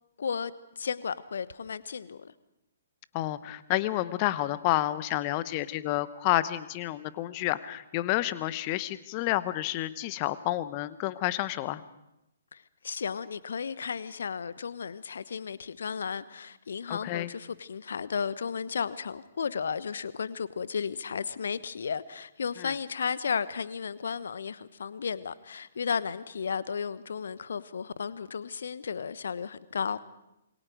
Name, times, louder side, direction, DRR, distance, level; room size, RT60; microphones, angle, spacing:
voice 1, 0.2-0.5 0.8-2.3 12.5-30.0, left 6 dB, 60° left, 1.1 m, -34 dB
voice 2, 3.1-11.8 16.9-17.3 22.6-22.7, left 15 dB, 30° left, 1.1 m, -30 dB
27.5 x 23.0 x 4.9 m
figure-of-eight pair, 125°, 0 cm